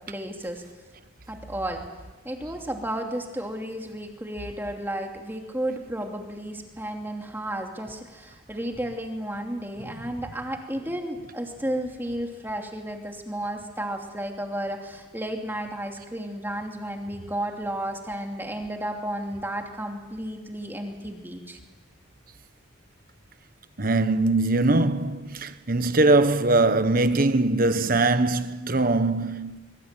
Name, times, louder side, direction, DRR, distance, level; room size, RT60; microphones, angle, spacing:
voice 1, 0.1-0.7 1.3-1.9 2.2-21.6, right 1 dB, 10° right, 2.8 m, -33 dB
voice 2, 23.8-29.6, right 2 dB, 45° right, 1.3 m, -22 dB
25.5 x 24.0 x 9.1 m
head